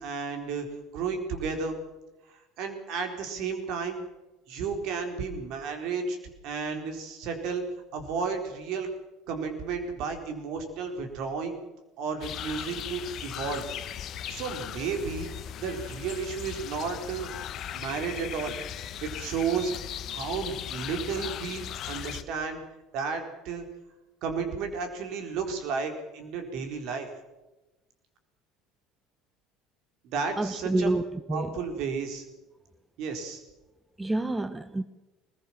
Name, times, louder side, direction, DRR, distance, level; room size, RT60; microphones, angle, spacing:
voice 1, 0.0-1.8 2.3-4.0 4.5-6.2 6.4-7.6 7.9-8.9 9.3-11.6 12.0-13.6 14.3-15.3 15.6-17.3 17.7-18.6 19.0-19.7 20.1-22.6 22.9-23.6 24.2-27.1 30.0-30.9 31.3-32.2 33.0-33.4, right 5 dB, 60° right, 5 dB, 4.2 m, -32 dB
sound 1, 12.2-22.2, left 10 dB, 50° left, 1.3 m, -38 dB
voice 2, 30.4-31.6 34.0-34.8, right 2 dB, 15° right, 12 dB, 1.1 m, -28 dB
21.0 x 20.5 x 7.4 m, 1.1 s
hypercardioid pair, 65°, 0 cm